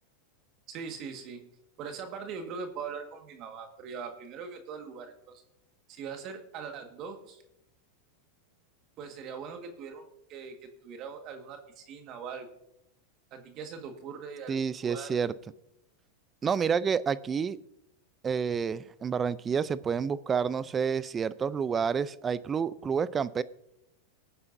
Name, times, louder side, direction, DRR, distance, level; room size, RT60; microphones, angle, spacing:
voice 1, 0.7-1.4 1.8-5.4 5.9-7.4 9.0-12.5 13.3-15.1, right 6 dB, 45° right, 5 dB, 1.7 m, -41 dB
voice 2, 14.5-15.3 16.4-17.6 18.2-23.4, right 6 dB, 25° right, 18 dB, 0.4 m, -29 dB
19.0 x 9.7 x 2.7 m, 0.80 s
hypercardioid pair, 115°, 0 cm